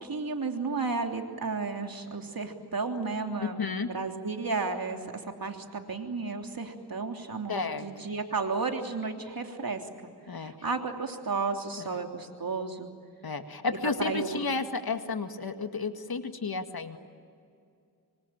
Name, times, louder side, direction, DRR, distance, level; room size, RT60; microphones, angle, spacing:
voice 1, 0.0-3.6 3.9-9.8 10.4-12.9 13.7-14.4, right 4 dB, 60° right, 3 dB, 3.3 m, -33 dB
voice 2, 3.6-3.9 7.5-7.9 10.3-10.5 13.2-17.0, left 4 dB, 65° left, 7 dB, 2.1 m, -32 dB
25.0 x 25.0 x 8.9 m, 2.4 s
cardioid pair, 55°, 40 cm